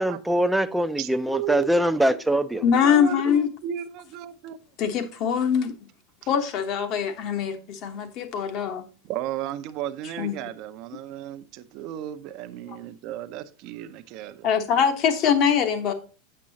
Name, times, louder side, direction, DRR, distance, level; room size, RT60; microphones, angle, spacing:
voice 1, 0.0-2.6, right 1 dB, 5° right, 0.5 m, -23 dB
voice 2, 1.0-1.8 2.1-2.2 2.5-3.3 3.6-4.6 9.0-14.5, right 11 dB, 55° right, 0.6 m, -34 dB
voice 3, 2.6-3.5 4.8-5.7 6.3-8.8 10.2-10.3 14.4-15.9, left 7 dB, 50° left, 1.1 m, -23 dB
7.5 x 6.1 x 2.8 m
supercardioid pair, 115°, 0 cm